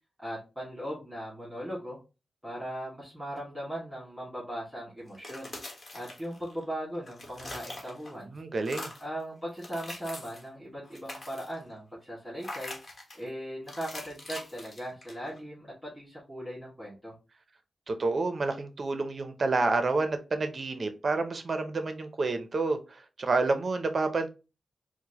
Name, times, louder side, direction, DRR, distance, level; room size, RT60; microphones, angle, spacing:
voice 1, 0.2-2.0 2.4-5.5 5.9-8.3 9.0-12.7 13.1-17.1, equal, 10° right, 2.0 m, -38 dB
sound 1, 5.1-6.6 6.9-8.2 8.6-9.1 9.5-10.5 10.8-11.6 12.4-13.2 13.7-15.4, left 1 dB, 40° left, 1.2 m, -43 dB
voice 2, 8.3-8.9 17.9-24.3, right 3 dB, 50° right, 0.6 m, -29 dB
4.5 x 2.1 x 2.9 m
wide cardioid pair, 100°, 0 cm